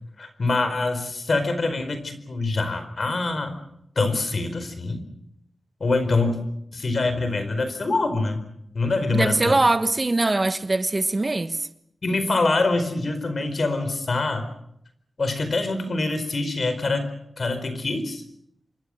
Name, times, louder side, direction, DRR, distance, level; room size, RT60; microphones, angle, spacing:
voice 1, 0.2-3.6 3.9-5.0 5.8-6.4 6.7-8.4 8.7-9.6 12.0-14.5 15.2-17.1 17.4-18.2, left 3 dB, 45° left, 4.6 m, -25 dB
voice 2, 9.1-11.7, right 2 dB, 25° right, 1.4 m, -22 dB
28.0 x 24.0 x 6.5 m
wide cardioid pair, 160°, 0 cm